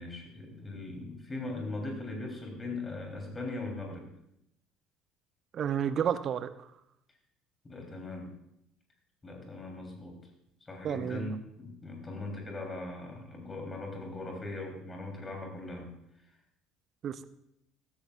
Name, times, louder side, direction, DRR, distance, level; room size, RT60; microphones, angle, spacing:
voice 1, 0.0-4.1 7.6-8.3 9.2-10.2 10.7-15.9, left 2 dB, 20° left, 1 dB, 3.6 m, -39 dB
voice 2, 5.5-6.5 10.8-11.3 17.0-17.2, right 8 dB, 45° right, 13 dB, 0.7 m, -31 dB
15.5 x 13.5 x 2.5 m, 0.78 s
figure-of-eight pair, 60°, 0 cm